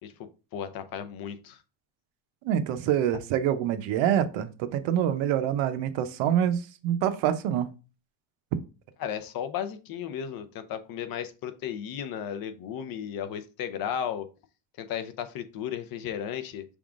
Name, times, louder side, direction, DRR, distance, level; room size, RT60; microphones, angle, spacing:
voice 1, 0.0-1.6 9.0-14.3 14.8-16.7, left 9 dB, 50° left, 9 dB, 0.6 m, -35 dB
voice 2, 2.4-7.7, right 10 dB, 80° right, 10 dB, 0.7 m, -26 dB
6.0 x 3.5 x 2.4 m, 0.33 s
cardioid pair, 160°, 47 cm